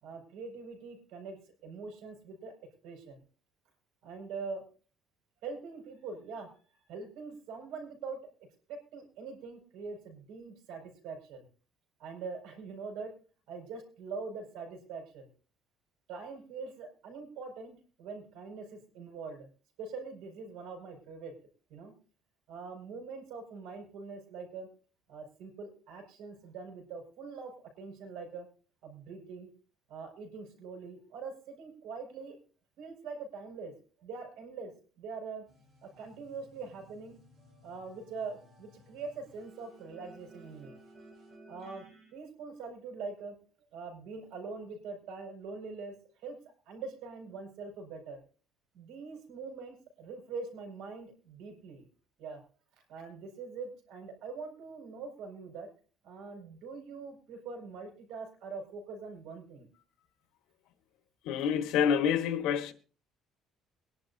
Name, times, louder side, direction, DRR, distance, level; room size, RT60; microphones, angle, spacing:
voice 1, 0.0-1.4 1.6-2.5 2.8-3.2 4.0-4.6 5.4-6.5 6.9-8.2 8.7-11.5 12.0-13.1 13.5-15.3 16.1-19.5 19.8-21.3 21.7-21.9 22.5-24.7 25.1-28.5 28.8-29.5 29.9-32.4 32.8-33.7 34.0-34.7 35.0-35.4 35.8-37.2 37.6-40.8 41.5-41.8 42.1-43.3 43.7-48.2 48.7-51.8 52.2-52.4 52.9-55.7 56.0-59.7, right 4 dB, 90° right, 5.4 m, -43 dB
sound 1, 35.5-42.1, right 1 dB, 40° right, 7.2 m, -57 dB
voice 2, 61.2-62.7, left 8 dB, 85° left, 1.3 m, -27 dB
23.0 x 11.0 x 2.8 m
cardioid pair, 140°, 0 cm